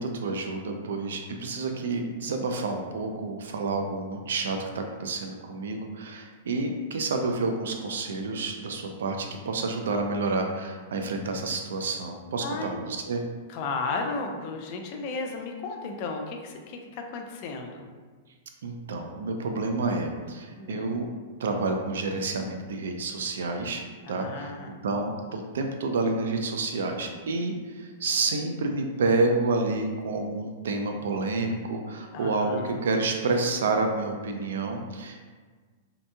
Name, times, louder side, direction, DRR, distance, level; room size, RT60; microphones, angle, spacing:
voice 1, 0.0-13.2 18.6-21.1 21.4-23.8 24.1-24.5 24.8-35.2, right 3 dB, 85° right, 4 dB, 0.4 m, -29 dB
voice 2, 12.4-12.8 13.5-17.9 20.5-21.0 24.0-24.7 32.1-32.7, left 3 dB, 35° left, 3 dB, 0.3 m, -34 dB
2.8 x 2.2 x 2.6 m, 1.4 s
supercardioid pair, 170°, 0 cm